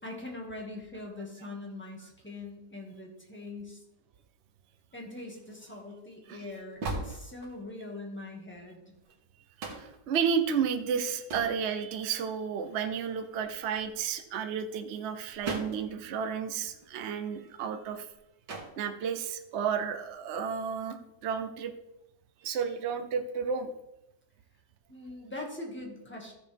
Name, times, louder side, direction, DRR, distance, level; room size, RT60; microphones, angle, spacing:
voice 1, 0.0-3.8 4.9-9.0 24.9-26.3, left 2 dB, 5° left, -1 dB, 1.9 m, -42 dB
sound 1, 5.2-7.8 8.4-8.5 8.8-9.2 9.6-10.1 10.9-11.6 12.1-12.2 12.6-14.1 14.9-16.0 16.2-16.3 16.5-18.2 18.4-18.8 19.7-20.1, right 3 dB, 70° right, 2.2 m, -41 dB
voice 2, 9.6-18.1 18.8-21.7 22.4-23.7, right 7 dB, 50° right, 6 dB, 0.9 m, -32 dB
14.0 x 6.9 x 3.5 m, 0.88 s
omnidirectional pair, 2.0 m